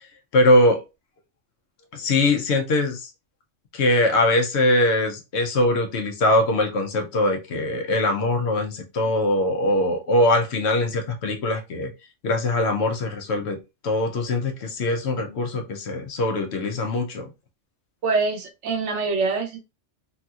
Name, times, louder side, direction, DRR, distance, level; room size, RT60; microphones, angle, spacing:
voice 1, 0.3-0.8 1.9-3.1 3.7-11.9 12.2-13.6 13.8-17.3, left 1 dB, 70° left, 1.0 m, -22 dB
voice 2, 18.0-19.6, right 4 dB, 75° right, 1.1 m, -24 dB
3.0 x 2.8 x 2.3 m
omnidirectional pair, 1.2 m